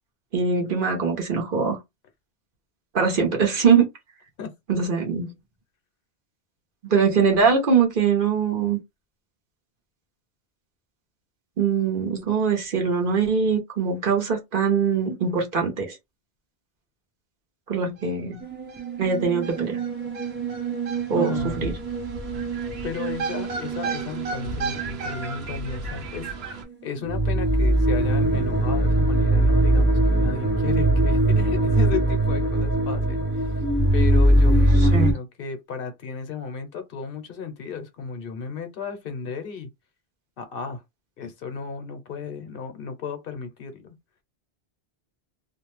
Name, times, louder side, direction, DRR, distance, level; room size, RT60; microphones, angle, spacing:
voice 1, 0.3-1.8 2.9-3.9 4.7-5.3 6.8-8.8 11.6-16.0 17.7-18.4 19.0-19.8 21.1-21.3 21.6-21.7 34.8-35.2, right 6 dB, 60° right, 0.9 m, -22 dB
sound 1, 18.0-18.1 18.3-18.4 18.7-26.6, right 3 dB, 80° right, 0.9 m, -34 dB
sound 2, 18.4-25.8 26.2-26.6 27.0-35.1, right 1 dB, 15° right, 0.6 m, -22 dB
voice 2, 21.2-21.6 22.8-26.4 26.8-33.5 33.9-39.7 40.4-40.8 41.2-43.9, left 5 dB, 65° left, 0.9 m, -34 dB
2.5 x 2.0 x 3.1 m
omnidirectional pair, 1.0 m